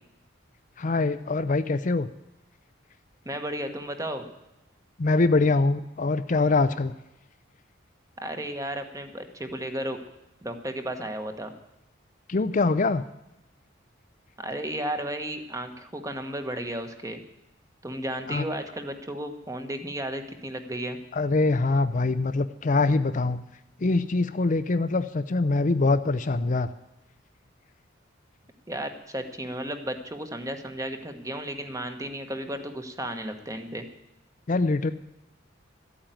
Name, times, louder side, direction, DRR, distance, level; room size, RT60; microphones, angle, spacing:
voice 1, 0.8-2.1 5.0-6.9 12.3-13.0 18.3-18.4 21.1-23.4 23.8-26.7 34.5-34.9, left 3 dB, 40° left, 11 dB, 0.5 m, -23 dB
voice 2, 3.2-4.3 8.2-10.0 10.4-11.5 14.4-17.2 17.8-21.0 28.7-33.8, right 1 dB, 15° right, 7 dB, 1.3 m, -34 dB
13.0 x 8.8 x 9.1 m, 0.92 s
head